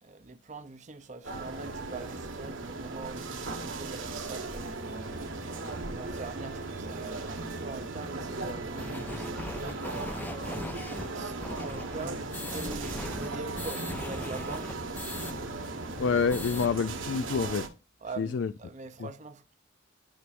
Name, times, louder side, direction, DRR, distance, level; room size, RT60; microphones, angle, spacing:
voice 1, 0.0-10.7 11.1-15.0 18.0-19.5, right 3 dB, 35° right, 0.7 m, -44 dB
sound 1, 1.2-17.7, right 3 dB, 75° right, 1.5 m, -37 dB
sound 2, 8.8-15.3 15.7-15.8 16.1-16.7, left 1 dB, 10° left, 0.5 m, -40 dB
voice 2, 16.0-17.7 18.2-18.5, left 5 dB, 65° left, 0.4 m, -27 dB
11.5 x 6.0 x 2.6 m
head